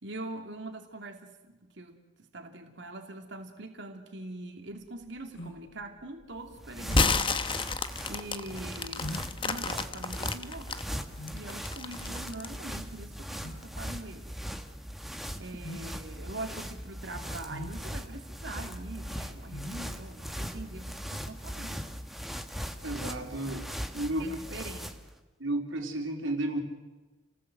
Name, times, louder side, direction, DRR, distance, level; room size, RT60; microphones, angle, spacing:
voice 1, 0.0-7.4 8.1-14.3 15.4-21.9 23.4-23.6 24.2-24.9, right 2 dB, 65° right, 4 dB, 2.7 m, -43 dB
sound 1, 4.7-21.1, left 1 dB, 90° left, 6.2 m, -46 dB
sound 2, 6.4-25.1, equal, ahead, 1.3 m, -40 dB
sound 3, 6.8-10.8 11.3-12.6, left 4 dB, 25° left, 1.1 m, -30 dB
voice 2, 22.8-23.7 23.9-24.4 25.4-26.6, right 1 dB, 85° right, 3 dB, 4.0 m, -32 dB
30.0 x 19.0 x 7.9 m, 1.2 s
head